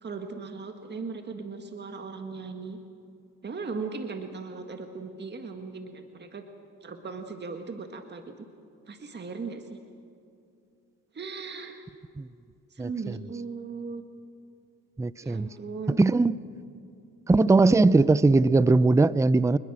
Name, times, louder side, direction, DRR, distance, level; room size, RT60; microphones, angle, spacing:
voice 1, 0.0-2.8 3.4-6.4 6.8-8.5 8.9-9.8 11.1-11.8 12.7-14.0 15.2-16.0, right 4 dB, 35° right, 5 dB, 1.8 m, -38 dB
voice 2, 15.0-15.5 15.9-16.3 17.3-19.6, right 3 dB, 10° right, 17 dB, 0.5 m, -20 dB
26.5 x 21.0 x 7.5 m, 2.6 s
cardioid pair, 90°, 30 cm